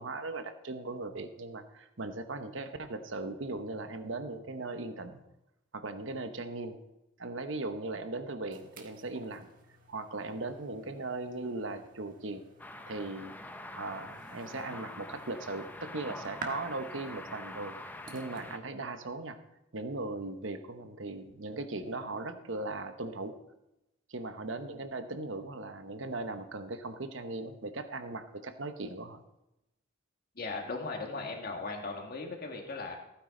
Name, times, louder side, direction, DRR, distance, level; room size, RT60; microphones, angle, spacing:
voice 1, 0.0-5.2 5.7-6.8 7.2-9.5 9.9-12.4 12.9-13.4 13.7-17.8 18.1-19.4 19.7-23.4 24.1-29.2, right 2 dB, 75° right, 9 dB, 1.0 m, -38 dB
sound 1, 8.5-18.6, right 3 dB, 45° right, 1.5 m, -51 dB
sound 2, 12.6-18.6, left 1 dB, 10° left, 0.7 m, -45 dB
voice 2, 30.4-33.0, left 3 dB, 50° left, 2 dB, 2.0 m, -38 dB
15.5 x 9.4 x 3.9 m, 0.90 s
head